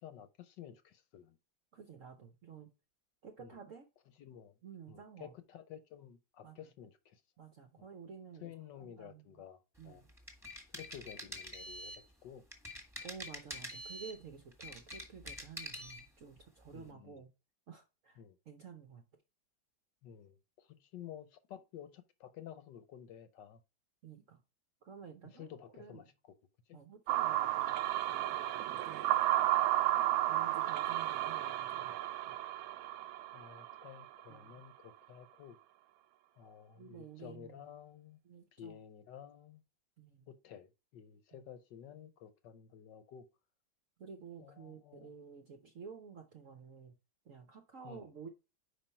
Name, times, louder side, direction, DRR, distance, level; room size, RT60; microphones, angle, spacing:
voice 1, 0.0-1.4 3.4-3.6 4.2-4.5 4.9-7.2 8.4-10.0 10.7-11.9 12.2-12.4 16.7-17.2 18.2-18.4 20.0-23.6 25.3-26.1 33.3-35.6 36.4-38.2 38.5-39.6 40.3-43.2 44.4-45.1 47.8-48.1, left 9 dB, 70° left, 1.3 m, -52 dB
voice 2, 1.7-2.7 3.2-3.9 4.6-5.3 6.4-6.6 7.4-8.5 8.8-9.4 9.8-10.1 13.0-17.3 17.7-19.0 24.0-24.4 24.8-25.5 25.8-26.1 26.7-27.8 28.1-29.2 30.3-32.4 34.3-34.6 36.8-37.7 38.2-38.8 40.0-40.3 41.3-41.5 44.0-46.9 47.2-48.3, right 6 dB, 60° right, 0.9 m, -52 dB
sound 1, 10.1-12.0 12.5-14.2 14.5-16.0, equal, ahead, 1.3 m, -45 dB
sound 2, 27.1-34.2, right 14 dB, 80° right, 1.3 m, -33 dB
5.3 x 5.1 x 4.3 m
omnidirectional pair, 2.2 m